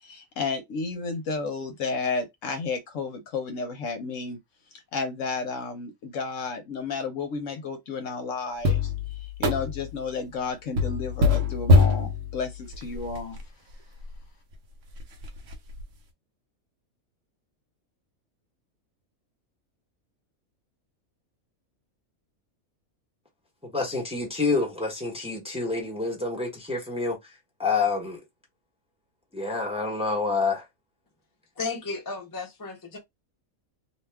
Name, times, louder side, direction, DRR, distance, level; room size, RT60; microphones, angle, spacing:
voice 1, 0.0-4.4 4.9-13.4, left 4 dB, 65° left, 1.0 m, -32 dB
sound 1, 8.6-10.0 10.8-13.4 14.0-14.1 14.5-14.6 15.0-15.8, left 3 dB, 65° right, 1.0 m, -24 dB
voice 2, 23.6-27.3 27.6-28.2 29.3-30.6, left 4 dB, 5° right, 0.8 m, -28 dB
voice 3, 31.6-33.0, left 4 dB, 20° left, 0.5 m, -34 dB
2.7 x 2.3 x 3.3 m
omnidirectional pair, 1.5 m